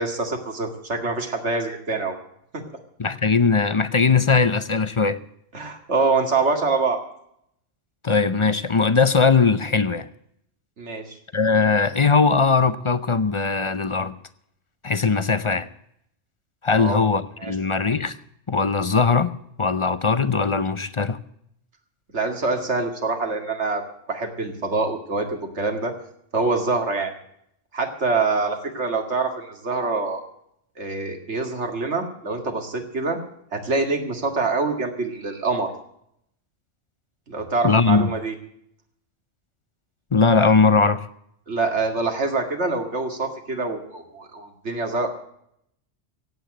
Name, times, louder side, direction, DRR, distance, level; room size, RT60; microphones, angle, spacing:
voice 1, 0.0-2.2 2.5-2.6 5.5-7.0 10.8-11.1 16.7-17.0 17.4-17.5 22.1-23.8 24.1-25.9 26.3-27.1 27.7-30.2 30.8-33.2 33.5-35.7 37.3-38.3 41.5-45.1, right 3 dB, 70° right, 2.5 m, -25 dB
voice 2, 3.0-5.2 8.0-10.1 11.3-14.2 14.8-15.7 16.6-18.2 18.5-19.3 19.6-21.2 37.6-38.1 40.1-41.1, left 4 dB, 35° left, 0.6 m, -20 dB
16.0 x 8.6 x 7.9 m
omnidirectional pair, 1.2 m